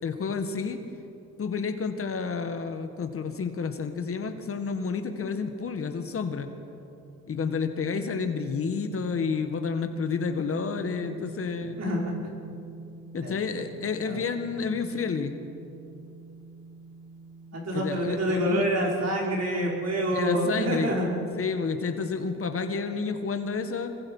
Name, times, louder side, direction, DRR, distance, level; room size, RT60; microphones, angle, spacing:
voice 1, 0.0-0.8 1.4-6.5 7.3-11.8 13.1-15.4 17.7-18.6 20.1-21.0 21.4-23.9, left 5 dB, 45° left, 7 dB, 1.8 m, -30 dB
sound 1, 7.3-20.4, right 2 dB, 35° right, 6.9 m, -45 dB
voice 2, 11.8-12.1 13.2-13.3 14.0-14.2 17.5-21.1, equal, 55° right, -2 dB, 5.3 m, -27 dB
25.5 x 22.0 x 5.7 m, 2.7 s
cardioid pair, 90°, 30 cm